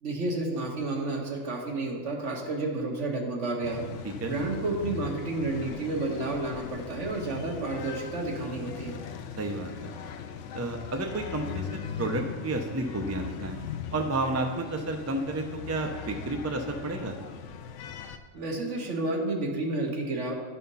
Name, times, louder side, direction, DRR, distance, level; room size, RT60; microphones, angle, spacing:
voice 1, 0.0-3.9 4.3-9.0 18.3-20.3, right 2 dB, 70° right, 0 dB, 1.6 m, -31 dB
sound 1, 3.6-18.2, left 8 dB, 75° left, 0.9 m, -40 dB
voice 2, 9.4-9.9 10.5-13.6 13.9-17.1, right 2 dB, 20° right, 3 dB, 0.4 m, -31 dB
11.5 x 4.3 x 5.4 m, 1.5 s
omnidirectional pair, 1.3 m